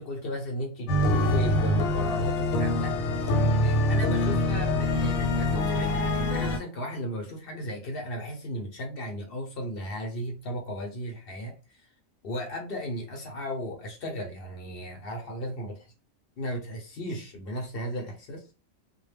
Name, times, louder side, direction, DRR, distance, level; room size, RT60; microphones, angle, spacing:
voice 1, 0.0-11.9 12.2-15.9 16.4-18.5, equal, 55° left, 0.8 m, -35 dB
sound 1, 0.9-6.6, left 1 dB, 85° left, 1.0 m, -25 dB
2.2 x 2.1 x 3.2 m
omnidirectional pair, 1.4 m